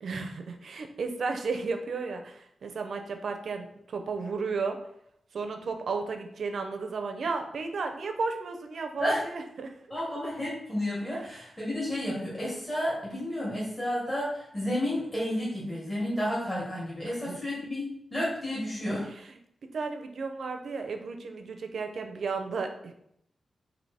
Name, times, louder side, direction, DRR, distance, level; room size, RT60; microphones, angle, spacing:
voice 1, 0.0-4.8 5.3-9.7 11.1-11.2 17.0-17.4 19.7-22.9, right 4 dB, 70° right, 6 dB, 0.6 m, -33 dB
voice 2, 9.9-19.1, left 1 dB, 15° left, -7 dB, 1.5 m, -31 dB
4.1 x 2.7 x 4.7 m, 0.74 s
wide cardioid pair, 100°, 0 cm